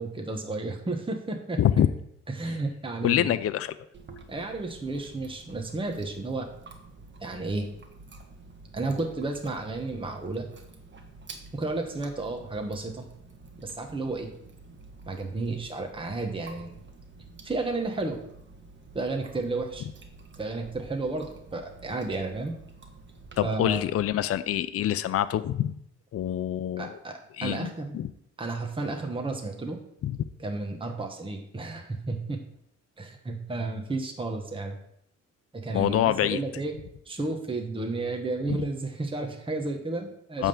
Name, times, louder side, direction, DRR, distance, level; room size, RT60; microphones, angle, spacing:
voice 1, 0.0-1.6 2.3-3.3 4.3-6.5 7.2-7.7 8.7-10.5 11.5-13.1 13.6-14.3 15.1-16.8 17.4-18.2 18.9-19.9 20.4-22.6 23.4-23.8 26.8-27.9 28.4-29.8 30.4-32.4 33.0-34.8 35.5-40.5, right 2 dB, 15° right, 3 dB, 1.2 m, -32 dB
voice 2, 3.0-3.8 23.4-25.8 26.1-27.0 27.4-28.1 30.0-30.2 35.7-36.4 38.5-38.6 40.4-40.5, left 11 dB, 50° left, 12 dB, 0.5 m, -25 dB
Chewing mastication, 3.9-23.4, right 3 dB, 40° right, 1.3 m, -49 dB
9.0 x 3.7 x 7.0 m, 0.72 s
cardioid pair, 90°, 30 cm